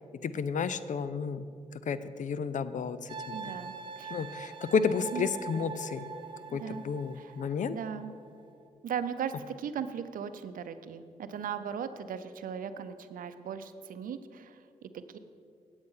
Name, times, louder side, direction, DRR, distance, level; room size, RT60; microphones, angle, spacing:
voice 1, 0.2-1.5 1.9-3.6 4.1-6.0 6.5-7.8, left 6 dB, 60° left, 14 dB, 0.5 m, -32 dB
sound 1, 3.1-8.5, right 5 dB, 35° right, 0.9 m, -43 dB
voice 2, 3.3-4.1 5.1-5.3 6.5-6.8 7.2-7.3 7.7-8.1 8.8-15.2, right 7 dB, 75° right, 11 dB, 0.6 m, -38 dB
8.9 x 8.0 x 5.6 m, 2.4 s
cardioid pair, 60°, 14 cm